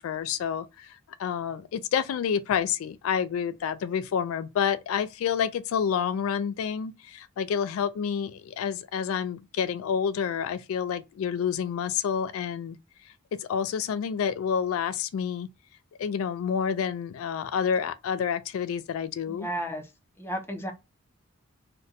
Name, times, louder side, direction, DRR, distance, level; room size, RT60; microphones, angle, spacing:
voice 1, 0.0-12.8 13.1-13.2 13.4-15.5 16.0-19.5, left 7 dB, 80° left, 0.3 m, -29 dB
voice 2, 19.3-19.9 20.2-20.7, right 1 dB, 10° left, 0.5 m, -33 dB
2.6 x 2.1 x 3.8 m
head